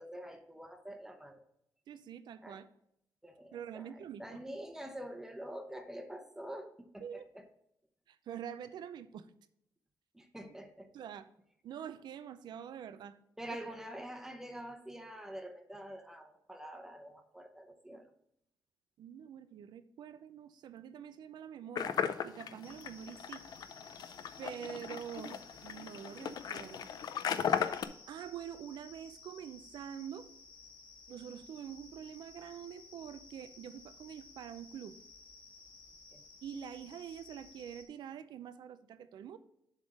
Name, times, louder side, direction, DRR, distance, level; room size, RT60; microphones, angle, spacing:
voice 1, 0.0-1.4 2.4-2.6 3.2-7.4 10.1-10.9 13.4-18.1 36.1-36.2, right 1 dB, 5° right, 6 dB, 0.9 m, -46 dB
voice 2, 1.9-2.7 3.5-4.4 7.0-7.3 8.1-9.3 10.9-11.3 11.6-13.2 19.0-23.5 24.4-26.9 28.1-30.3 31.1-35.0 36.4-39.4, right 9 dB, 80° right, 13 dB, 0.5 m, -46 dB
sound 1, 21.7-27.8, left 8 dB, 65° left, 0.4 m, -36 dB
sound 2, 22.6-37.9, left 3 dB, 15° left, 1.5 m, -56 dB
7.3 x 3.6 x 6.4 m, 0.76 s
cardioid pair, 130°, 7 cm